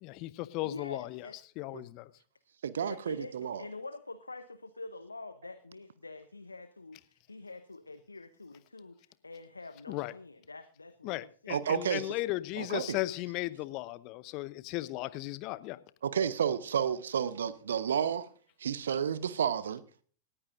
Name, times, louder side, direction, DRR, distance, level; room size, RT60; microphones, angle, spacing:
voice 1, 0.0-1.3 1.6-2.1 9.9-10.1 11.0-15.8, left 18 dB, 40° left, 0.9 m, -36 dB
voice 2, 0.6-1.4 2.8-3.3 3.6-11.6, left 3 dB, 80° left, 0.8 m, -46 dB
voice 3, 2.6-3.6 11.5-12.1 12.6-13.0 16.0-18.3 18.6-19.8, right 8 dB, 65° right, 0.9 m, -31 dB
18.5 x 14.5 x 2.6 m
figure-of-eight pair, 90°, 0 cm